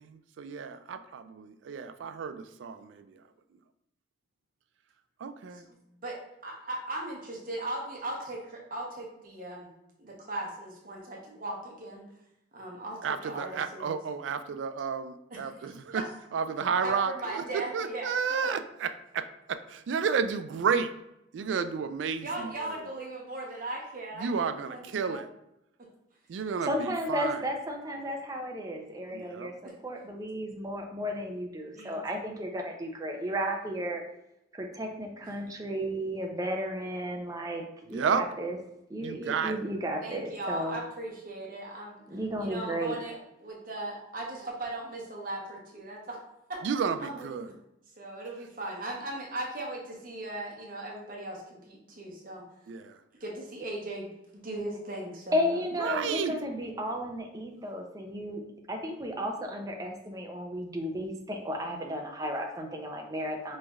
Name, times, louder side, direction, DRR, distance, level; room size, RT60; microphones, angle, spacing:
voice 1, 0.0-3.2 5.2-5.7 13.0-16.0 16.3-20.9 21.3-22.8 24.2-25.3 26.3-27.4 29.1-29.5 37.9-38.2 39.0-39.6 46.6-47.5 52.7-53.0 55.8-56.3, right 6 dB, 85° right, 11 dB, 0.3 m, -32 dB
voice 2, 6.4-9.7 10.0-12.0 12.5-13.0 13.2-13.9 15.3-16.0 16.8-18.1 22.2-24.3 24.7-25.2 29.6-29.7 31.7-32.0 40.0-46.2 46.8-47.6 48.0-52.4 53.2-56.0, right 2 dB, 50° right, -1 dB, 0.8 m, -38 dB
voice 3, 26.7-29.5 29.8-34.0 34.5-38.6 38.9-40.8 42.1-42.9 55.3-58.4 58.7-63.6, equal, 20° right, 2 dB, 0.5 m, -33 dB
5.2 x 3.2 x 2.3 m, 0.84 s
head